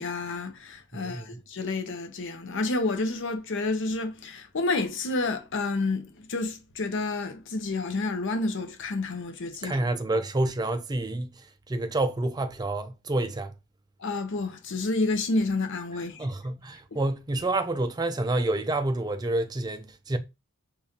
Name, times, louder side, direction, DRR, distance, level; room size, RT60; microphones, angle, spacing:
voice 1, 0.0-9.8 14.0-16.3, left 3 dB, 60° left, 0.7 m, -29 dB
voice 2, 1.0-1.4 9.6-11.3 11.7-13.5 16.2-20.2, right 2 dB, 20° right, 0.4 m, -28 dB
5.0 x 2.4 x 2.8 m
head